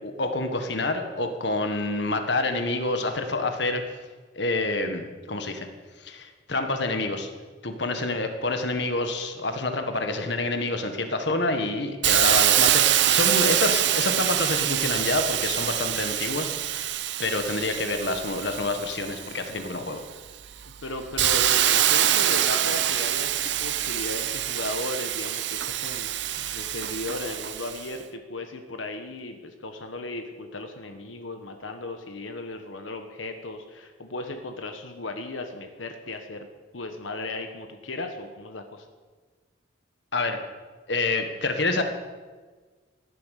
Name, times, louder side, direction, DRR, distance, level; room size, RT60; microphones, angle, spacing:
voice 1, 0.0-3.8 4.3-5.7 6.0-7.3 7.6-16.9 17.2-20.0 40.1-40.4 40.9-41.8, left 2 dB, 65° left, 6 dB, 1.6 m, -27 dB
Hiss, 12.0-19.6 20.1-27.9, right 12 dB, 65° right, 0.7 m, -25 dB
voice 2, 20.8-36.5 36.7-38.9, left 2 dB, 90° left, 6 dB, 1.3 m, -36 dB
16.0 x 11.5 x 6.6 m, 1.4 s
head